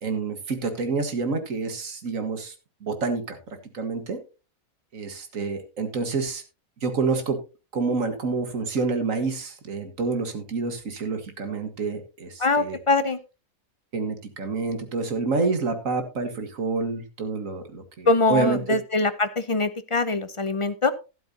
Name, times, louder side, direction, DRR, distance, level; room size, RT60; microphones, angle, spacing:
voice 1, 0.0-2.5 2.8-3.4 3.7-4.2 4.9-6.4 6.8-7.4 7.7-12.8 13.9-18.8, right 4 dB, 65° right, 8 dB, 2.0 m, -28 dB
voice 2, 12.4-13.2 18.1-20.9, left 3 dB, 40° left, 12 dB, 0.4 m, -23 dB
12.0 x 12.0 x 2.8 m, 0.30 s
omnidirectional pair, 1.5 m